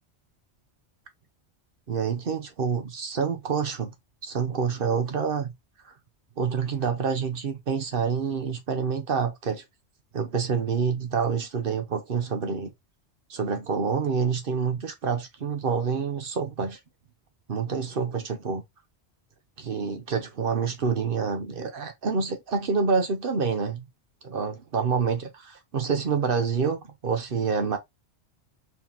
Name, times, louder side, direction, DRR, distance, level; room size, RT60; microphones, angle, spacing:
voice 1, 1.9-3.9 4.2-5.5 5.8-5.9 6.4-9.6 10.1-12.7 13.3-16.8 17.5-18.6 19.6-23.9 24.2-27.8, right 5 dB, 55° right, 1.0 m, -27 dB
4.5 x 3.7 x 2.9 m
omnidirectional pair, 1.2 m